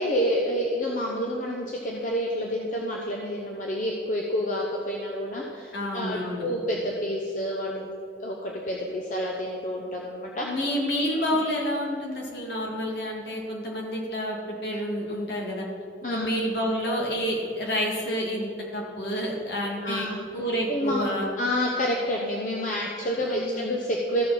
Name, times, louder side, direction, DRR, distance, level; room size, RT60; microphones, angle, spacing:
voice 1, 0.0-7.9 8.2-10.6 11.1-11.2 16.0-16.3 19.8-20.3 20.7-21.0 21.4-24.3, equal, 45° left, -1 dB, 0.9 m, -29 dB
voice 2, 5.7-6.5 10.4-15.7 16.1-20.1 20.3-21.3 23.2-23.7, equal, 65° left, -2 dB, 2.1 m, -29 dB
14.5 x 6.8 x 4.2 m, 2.5 s
head